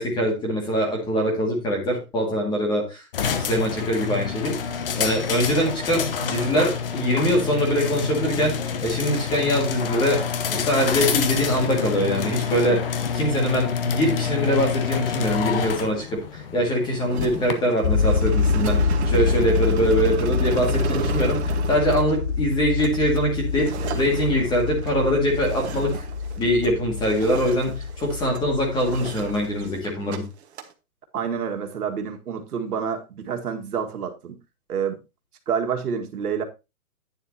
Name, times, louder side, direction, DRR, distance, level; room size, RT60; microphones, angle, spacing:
voice 1, 0.0-4.6 5.0-12.8 13.1-25.9 26.4-30.2, equal, 10° left, 2.1 m, -23 dB
sound 1, 3.1-17.5, left 7 dB, 40° left, 1.0 m, -27 dB
sound 2, 17.1-26.8 27.0-28.4 28.8-30.2 30.4-30.7, right 8 dB, 45° right, 1.5 m, -34 dB
sound 3, 17.8-29.7, left 5 dB, 55° left, 4.7 m, -26 dB
voice 2, 31.1-34.4 34.7-35.0 35.5-36.4, right 7 dB, 80° right, 1.9 m, -28 dB
11.0 x 9.3 x 2.8 m
hypercardioid pair, 165°, 44 cm